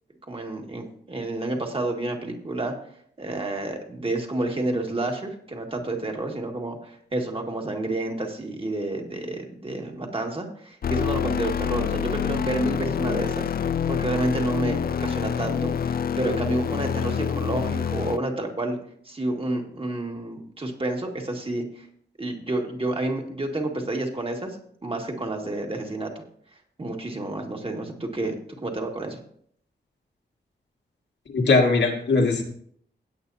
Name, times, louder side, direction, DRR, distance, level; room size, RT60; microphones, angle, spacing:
voice 1, 0.3-2.7 3.2-13.5 13.9-18.8 19.1-21.9 22.2-24.6 24.8-26.1 26.8-28.3 28.6-29.2, right 2 dB, 30° right, 1 dB, 2.1 m, -29 dB
sound 1, 10.8-18.2, left 8 dB, 55° left, 0.4 m, -27 dB
voice 2, 31.3-32.4, left 3 dB, 85° left, 2 dB, 2.0 m, -20 dB
16.5 x 8.9 x 2.8 m, 0.63 s
wide cardioid pair, 90°, 18 cm